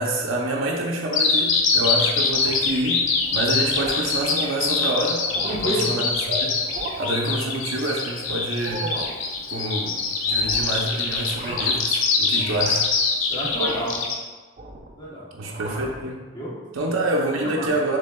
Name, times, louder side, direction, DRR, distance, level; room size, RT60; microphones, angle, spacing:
voice 1, 0.0-6.6 7.0-9.0 9.5-12.8 15.3-16.2 16.7-18.0, right 1 dB, 80° right, -2 dB, 0.6 m, -27 dB
Bird vocalization bird call bird song, 1.1-14.1, left 5 dB, 75° left, 0.6 m, -23 dB
sound 1, 2.2-2.8 3.2-3.5 3.8-4.1 4.7-4.8 5.1-5.8 6.6-7.1 8.5-9.2 10.3-10.8 11.2-11.9 12.3-12.9 13.5-14.0 14.3-15.0 15.4-16.1, right 2 dB, 35° right, 0.4 m, -36 dB
voice 2, 5.4-6.0 13.3-14.1 15.0-15.3 16.3-16.5 17.2-17.7, equal, 20° left, -6 dB, 0.9 m, -29 dB
6.4 x 3.4 x 2.2 m, 1.3 s
head